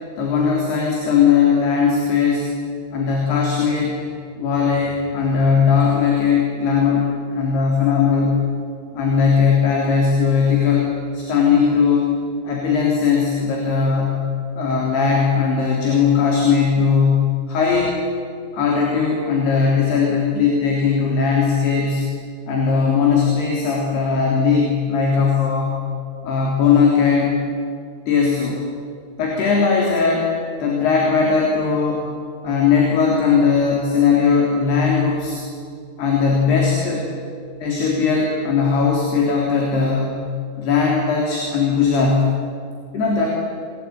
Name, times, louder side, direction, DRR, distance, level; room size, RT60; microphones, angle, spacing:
voice 1, 0.2-2.5 2.9-4.0 4.4-8.4 8.9-12.1 12.4-14.2 14.5-18.0 18.5-22.0 22.5-25.8 26.2-27.4 28.1-28.6 29.2-30.3 30.6-32.1 32.4-35.4 36.0-37.1 37.6-40.2 40.6-42.3 42.9-43.3, left 5 dB, 55° left, -1 dB, 5.1 m, -18 dB
28.0 x 21.0 x 9.4 m, 2.2 s
omnidirectional pair, 5.8 m